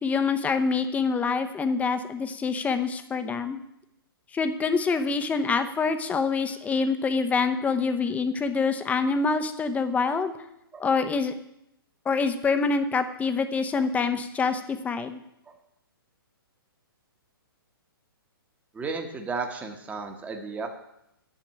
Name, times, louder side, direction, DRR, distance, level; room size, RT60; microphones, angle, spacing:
voice 1, 0.0-3.6 4.3-10.3 10.8-11.3 12.1-15.2, left 4 dB, 10° left, 9 dB, 0.8 m, -26 dB
voice 2, 18.7-20.7, right 4 dB, 10° right, 4 dB, 1.2 m, -34 dB
9.5 x 6.5 x 8.7 m, 0.83 s
hypercardioid pair, 135°, 12 cm